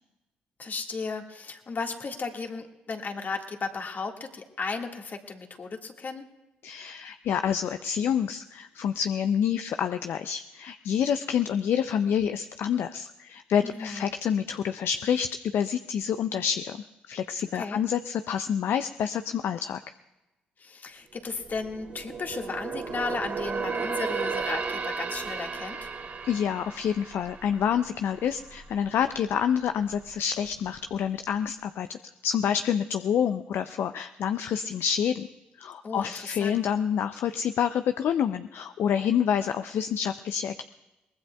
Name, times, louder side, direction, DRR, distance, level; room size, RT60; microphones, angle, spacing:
voice 1, 0.6-6.2 13.6-14.1 17.5-17.8 20.6-25.9 35.8-36.6, left 4 dB, 45° left, 3 dB, 1.8 m, -35 dB
voice 2, 6.6-19.8 26.2-35.3 35.6-40.6, left 8 dB, 65° left, 9 dB, 0.5 m, -28 dB
sound 1, 21.1-28.7 29.0-29.3 29.8-30.5 30.9-31.0, right 5 dB, 55° right, 2.9 m, -34 dB
22.5 x 19.5 x 2.3 m, 1.0 s
hypercardioid pair, 50°, 4 cm